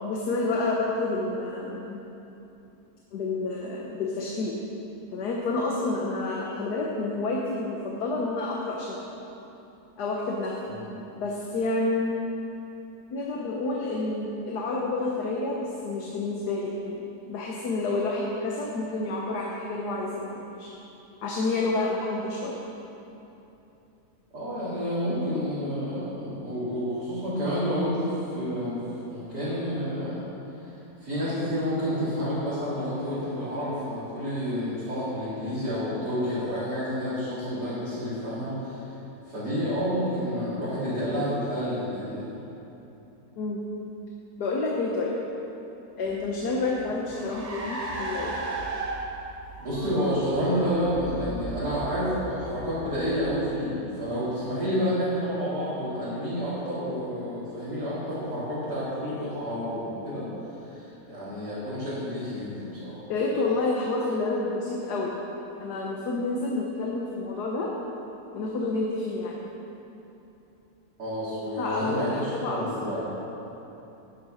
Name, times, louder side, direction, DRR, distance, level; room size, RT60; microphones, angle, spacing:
voice 1, 0.0-2.0 3.1-4.6 5.1-9.0 10.0-10.5 11.2-12.3 13.1-20.7 21.2-22.6 43.4-43.6 44.4-45.2 46.0-48.3 49.8-50.2 63.1-65.2 65.6-67.7 68.3-69.4 71.6-73.0, left 2 dB, 90° left, -2 dB, 1.7 m, -29 dB
voice 2, 24.3-28.8 29.1-30.3 30.6-30.7 31.0-38.8 39.3-42.3 49.6-60.3 60.6-63.0 71.0-73.0, equal, 85° right, -14 dB, 4.2 m, -29 dB
Car, 46.1-53.8, right 3 dB, 25° right, 1.2 m, -37 dB
11.5 x 9.3 x 6.4 m, 3.0 s
omnidirectional pair, 1.7 m